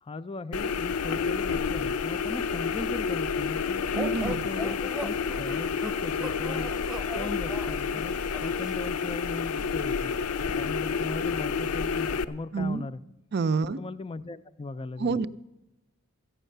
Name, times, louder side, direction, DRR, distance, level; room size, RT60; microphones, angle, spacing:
voice 1, 0.0-3.8 4.3-6.7 7.1-10.1 10.6-13.0 13.6-15.3, left 3 dB, 25° left, 12 dB, 0.4 m, -38 dB
sound 1, 0.5-12.2, left 5 dB, 85° left, 0.5 m, -29 dB
sound 2, 3.9-8.8, right 1 dB, ahead, 0.9 m, -39 dB
voice 2, 3.9-4.5 12.5-12.8 13.3-13.8 15.0-15.3, right 4 dB, 50° right, 14 dB, 0.5 m, -27 dB
14.5 x 9.1 x 6.6 m, 0.95 s
head